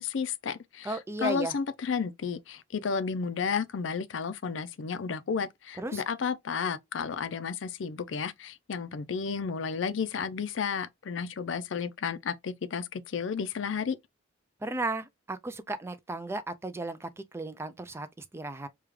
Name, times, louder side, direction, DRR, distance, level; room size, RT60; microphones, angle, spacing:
voice 1, 0.0-14.0, left 6 dB, 75° left, 0.5 m, -32 dB
voice 2, 0.8-1.5 5.8-6.0 14.6-18.7, right 2 dB, 15° right, 0.4 m, -35 dB
5.0 x 2.3 x 3.1 m
head